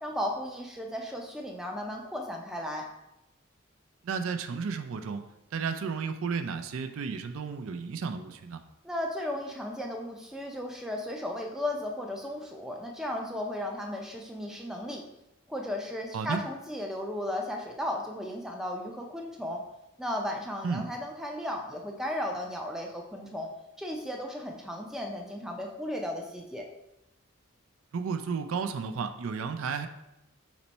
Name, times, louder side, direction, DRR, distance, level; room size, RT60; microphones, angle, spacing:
voice 1, 0.0-2.9 8.8-15.0 15.5-19.6 20.0-23.5 23.8-26.7, left 1 dB, ahead, 0 dB, 0.4 m, -35 dB
voice 2, 4.0-5.2 5.5-8.6 16.1-16.4 20.6-20.9 27.9-29.9, right 5 dB, 75° right, 8 dB, 0.4 m, -33 dB
4.1 x 3.0 x 4.3 m, 0.90 s
head